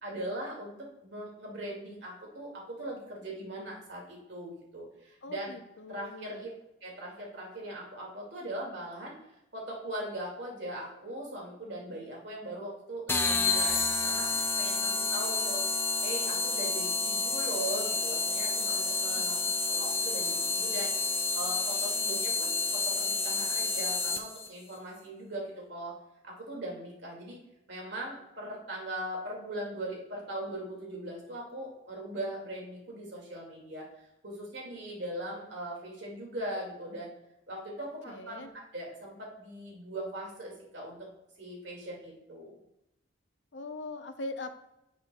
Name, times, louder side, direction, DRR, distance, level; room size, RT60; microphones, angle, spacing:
voice 1, 0.0-5.6 5.9-6.5 6.8-9.1 9.5-14.3 14.6-19.4 19.7-20.9 21.3-26.0 26.2-27.4 27.7-33.9 34.2-37.1 37.5-41.1 41.4-42.6, right 1 dB, 65° right, -2 dB, 2.1 m, -40 dB
voice 2, 5.2-6.4 19.2-19.3 38.1-38.5 43.5-44.5, left 2 dB, 65° left, 8 dB, 0.6 m, -41 dB
sound 1, 13.1-24.5, left 4 dB, 10° left, 0.4 m, -29 dB
10.0 x 6.0 x 2.3 m, 0.86 s
head